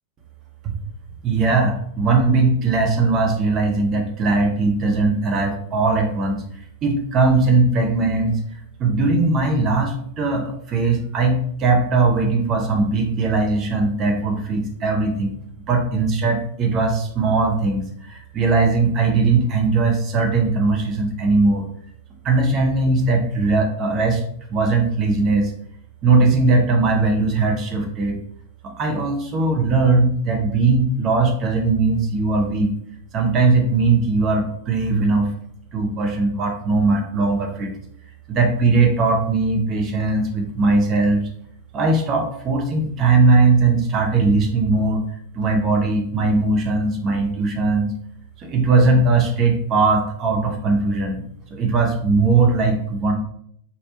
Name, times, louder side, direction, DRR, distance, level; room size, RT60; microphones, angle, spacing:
voice 1, 1.2-6.4 6.8-8.4 8.8-15.4 15.7-21.6 22.2-24.2 24.5-25.5 26.0-28.2 28.6-32.7 33.1-35.3 35.7-37.7 38.3-41.2 41.7-45.0 45.3-47.9 48.4-51.2 51.5-53.1, right 3 dB, 30° right, 3 dB, 0.9 m, -19 dB
4.2 x 3.3 x 2.8 m, 0.67 s
figure-of-eight pair, 90°, 0 cm